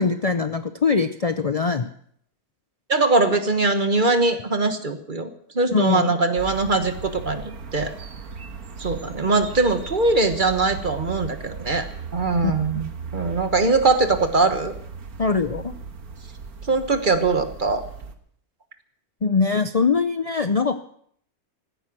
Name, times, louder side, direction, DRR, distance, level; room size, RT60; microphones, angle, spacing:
voice 1, 0.0-1.9 5.7-6.1 12.7-12.8 15.2-15.7 19.2-20.8, left 4 dB, 65° left, 9 dB, 0.3 m, -22 dB
voice 2, 2.9-7.9 8.8-11.9 12.1-14.7 16.6-17.8, right 3 dB, 35° right, 8 dB, 1.4 m, -21 dB
sound 1, 6.4-18.1, right 5 dB, 75° right, 1.8 m, -37 dB
15.5 x 14.0 x 6.2 m, 0.64 s
omnidirectional pair, 1.6 m